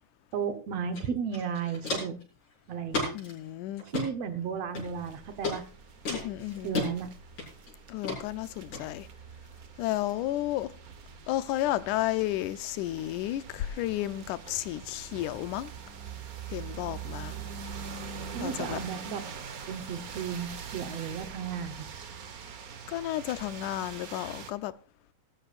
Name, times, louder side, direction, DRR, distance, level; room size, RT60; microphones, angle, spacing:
voice 1, 0.3-2.2 2.7-3.1 3.8-5.6 6.6-7.1 18.3-19.2 19.7-21.9, right 7 dB, 65° right, 2.1 m, -34 dB
Walk footsteps, 0.9-1.0 1.3-2.2 2.9-3.3 3.8-4.1 4.7-5.1 5.4-5.6 6.1-6.9 7.4-7.7 8.0-8.2 8.7-8.8, left 3 dB, 65° left, 6.9 m, -32 dB
voice 2, 3.1-3.8 6.1-6.7 7.9-9.1 9.8-10.7 11.3-15.7 16.5-17.4 18.4-18.8 22.9-24.7, left 14 dB, 85° left, 2.2 m, -32 dB
sound 1, 4.8-24.5, right 6 dB, 85° right, 0.8 m, -44 dB
19.0 x 13.5 x 2.5 m
omnidirectional pair, 3.5 m